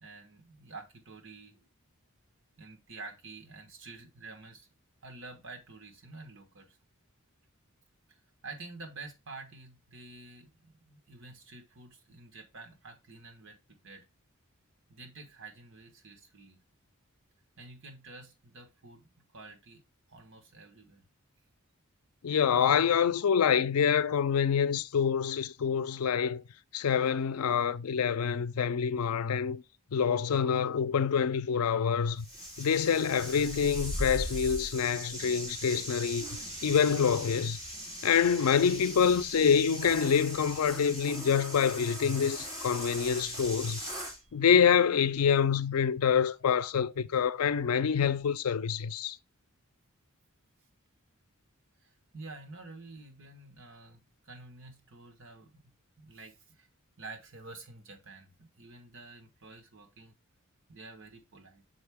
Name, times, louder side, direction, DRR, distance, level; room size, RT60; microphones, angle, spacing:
voice 1, 0.0-1.7 2.6-4.7 5.0-6.8 8.1-8.2 8.4-14.1 14.9-16.6 17.6-19.8 20.1-21.0 44.2-44.3 51.8-55.6 56.0-56.7 57.0-60.2 60.7-61.6, right 3 dB, 60° right, 1.3 m, -49 dB
voice 2, 22.2-26.4 26.7-29.6 29.9-32.3 32.6-36.3 36.6-37.6 38.0-43.8 44.3-49.2, left 7 dB, 90° left, 0.4 m, -26 dB
sound 1, 32.2-44.2, equal, 15° right, 2.6 m, -39 dB
6.3 x 4.6 x 3.5 m
head